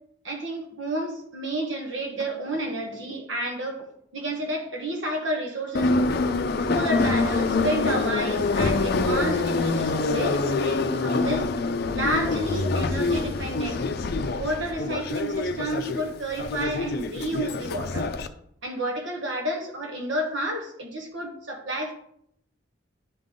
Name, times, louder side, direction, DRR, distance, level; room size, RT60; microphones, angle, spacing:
voice 1, 0.2-3.8 4.1-6.2 6.7-11.4 11.9-13.8 14.4-18.1 18.6-21.9, right 1 dB, 80° right, 2 dB, 1.2 m, -30 dB
Subway metro underground, 5.7-18.3, left 3 dB, 55° left, 0.5 m, -25 dB
10.5 x 3.8 x 3.7 m, 0.70 s
head